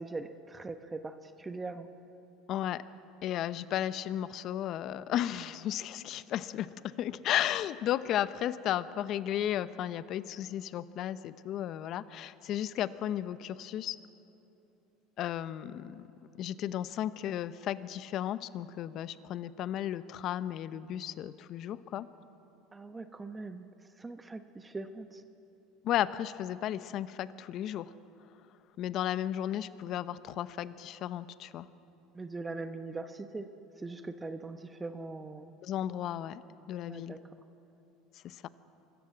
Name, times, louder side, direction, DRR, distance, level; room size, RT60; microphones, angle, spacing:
voice 1, 0.0-1.9 22.7-23.7 24.0-25.2 32.1-33.5 33.8-35.5 36.9-37.2, right 3 dB, 20° right, 9 dB, 1.0 m, -41 dB
voice 2, 2.5-2.8 3.2-14.0 15.2-16.1 16.4-22.1 25.8-27.9 28.8-31.7 35.6-36.4 36.7-37.2 38.2-38.5, left 11 dB, 55° left, 15 dB, 0.8 m, -34 dB
24.0 x 14.0 x 8.0 m, 2.9 s
hypercardioid pair, 90°, 0 cm